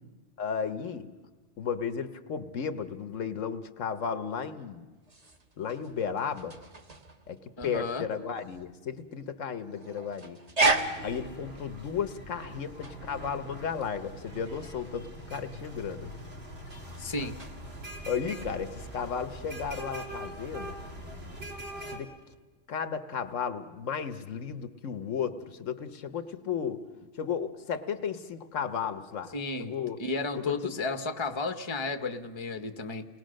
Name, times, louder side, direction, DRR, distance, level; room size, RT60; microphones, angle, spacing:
voice 1, 0.4-1.1 1.6-4.8 5.6-6.6 7.3-7.4 7.6-10.4 11.0-16.1 18.1-20.8 21.9-22.1 22.7-26.8 27.2-30.0 30.4-30.7, left 7 dB, 75° left, 11 dB, 1.3 m, -34 dB
sound 1, 4.9-19.3, right 3 dB, 30° right, 1.3 m, -36 dB
voice 2, 7.6-8.0 17.0-17.3 29.3-33.0, left 3 dB, 25° left, 7 dB, 1.0 m, -33 dB
sound 2, 10.7-22.0, equal, 50° right, 3.0 m, -43 dB
29.0 x 20.0 x 6.4 m, 1.3 s
omnidirectional pair, 1.3 m